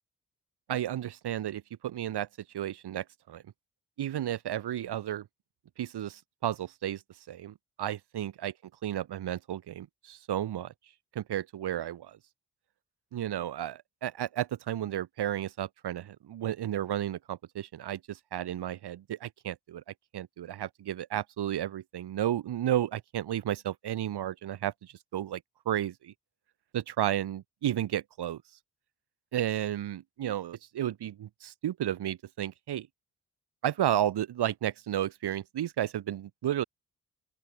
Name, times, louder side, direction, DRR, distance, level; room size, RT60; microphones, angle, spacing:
voice 1, 0.7-2.3 2.5-3.4 4.0-5.3 5.8-7.0 7.3-8.5 8.8-10.7 11.1-12.2 13.1-19.8 20.1-25.4 25.7-26.1 26.7-28.4 29.3-32.9 33.6-36.6, right 11 dB, 70° right, 4.4 m, -32 dB
open air
hypercardioid pair, 45°, 41 cm